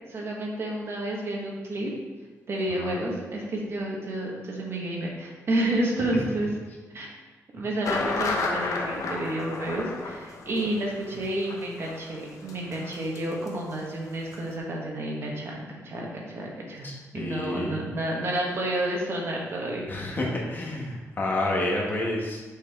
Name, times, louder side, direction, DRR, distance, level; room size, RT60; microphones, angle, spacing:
voice 1, 0.1-1.9 2.5-6.5 6.9-7.2 7.5-16.9 17.1-19.8, right 1 dB, 45° right, -2 dB, 1.2 m, -30 dB
sound 1, 7.8-13.5 13.7-13.8 14.3-14.4, left 3 dB, 70° left, 0.9 m, -32 dB
voice 2, 16.8-17.8 19.9-22.4, left 1 dB, 35° left, -1 dB, 1.1 m, -29 dB
6.6 x 5.3 x 3.5 m, 1.3 s
wide cardioid pair, 160°, 6 cm